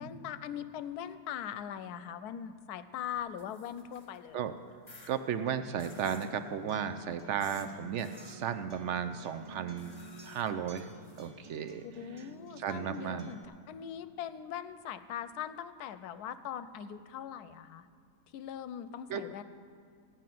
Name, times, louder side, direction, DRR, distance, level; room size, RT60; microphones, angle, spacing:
voice 1, 0.0-4.4 11.8-17.9 18.3-19.4, left 9 dB, 80° left, 13 dB, 1.1 m, -41 dB
sound 1, 3.2-4.2 4.9-5.1 5.8-6.3 7.4-7.7 8.0-8.4 9.8-11.3, left 3 dB, 25° left, 1.2 m, -54 dB
voice 2, 5.1-9.9 10.2-10.9 11.2-11.8 12.6-13.3 19.1-19.2, right 8 dB, 65° right, 9 dB, 0.7 m, -34 dB
Acoustic guitar, 5.5-13.4, right 2 dB, 15° right, 1.4 m, -52 dB
14.5 x 5.8 x 9.2 m, 2.3 s
omnidirectional pair, 1.7 m